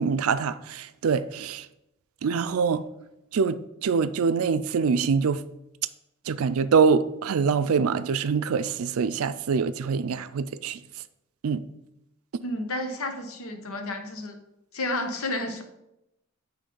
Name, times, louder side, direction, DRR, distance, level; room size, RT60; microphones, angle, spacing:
voice 1, 0.0-1.7 2.2-2.8 3.3-5.4 6.3-10.8 11.4-11.6, right 5 dB, 80° right, 0.4 m, -24 dB
voice 2, 12.4-14.4 14.7-15.6, left 1 dB, 80° left, 1.0 m, -31 dB
8.4 x 3.2 x 5.4 m
head